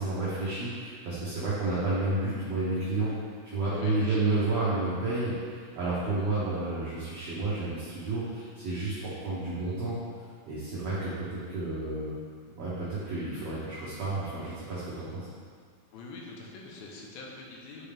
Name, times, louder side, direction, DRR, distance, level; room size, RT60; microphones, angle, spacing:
voice 1, 0.0-3.1 3.4-9.9 10.5-12.1 12.5-15.3, right 2 dB, 65° right, -9 dB, 1.6 m, -31 dB
voice 2, 3.7-4.5 15.9-17.9, left 3 dB, 80° left, -2 dB, 2.7 m, -43 dB
8.8 x 4.5 x 3.5 m, 2.1 s
omnidirectional pair, 4.3 m